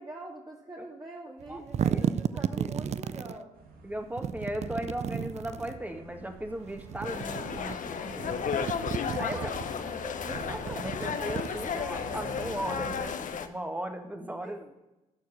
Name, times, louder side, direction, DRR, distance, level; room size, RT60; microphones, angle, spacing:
voice 1, 0.0-3.5 9.3-9.9 14.4-14.7, right 2 dB, 25° right, -2 dB, 2.1 m, -44 dB
sound 1, 1.4-3.4 4.2-5.8 6.7-7.8 8.1-9.6 10.2-12.0, right 8 dB, 45° right, 0.4 m, -33 dB
voice 2, 1.5-2.0 2.6-2.7 3.8-8.7 9.2-14.6, right 1 dB, 10° right, 5 dB, 1.8 m, -37 dB
sound 2, 3.5-13.0, right 3 dB, 75° right, 1.5 m, -48 dB
sound 3, 7.0-13.5, left 7 dB, 60° left, 0.9 m, -34 dB
12.5 x 4.7 x 5.9 m, 0.97 s
supercardioid pair, 55°, 15 cm